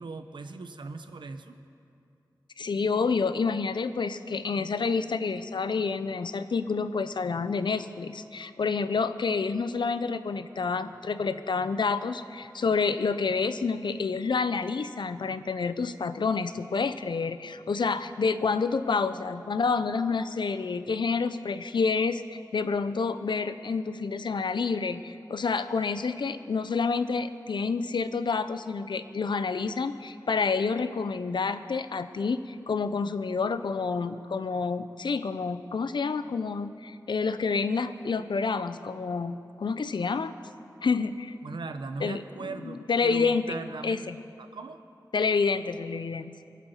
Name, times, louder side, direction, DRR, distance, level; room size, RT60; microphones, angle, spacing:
voice 1, 0.0-1.6 41.4-44.0 44.4-44.8, right 3 dB, 90° right, 8 dB, 0.9 m, -39 dB
voice 2, 2.6-40.3 40.8-41.4 42.0-42.2 42.6-44.2 45.1-46.3, left 4 dB, 80° left, 11 dB, 0.7 m, -28 dB
23.0 x 8.5 x 7.2 m, 2.6 s
cardioid pair, 50°, 8 cm